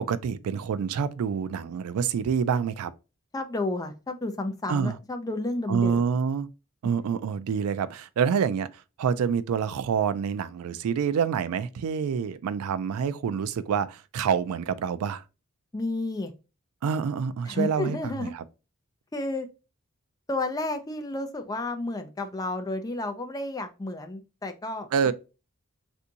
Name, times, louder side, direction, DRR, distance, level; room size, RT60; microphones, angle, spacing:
voice 1, 0.0-2.9 4.7-5.0 5.7-6.5 6.8-8.7 9.0-15.2 16.8-18.4 24.9-25.1, right 7 dB, 80° right, 0.3 m, -27 dB
voice 2, 3.3-6.0 15.7-16.3 17.5-18.3 19.1-19.5 20.3-24.9, left 2 dB, 15° left, 0.4 m, -31 dB
3.4 x 2.6 x 2.7 m
head